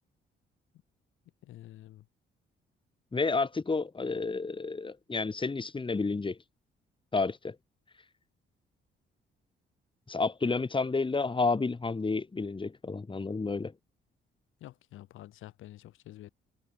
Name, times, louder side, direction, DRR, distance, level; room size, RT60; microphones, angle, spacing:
voice 1, 1.4-2.1 14.6-16.3, left 14 dB, 85° left, 6.0 m, -48 dB
voice 2, 3.1-6.4 7.1-7.5 10.1-13.7, left 3 dB, 25° left, 4.8 m, -30 dB
cardioid pair, 90°, 20 cm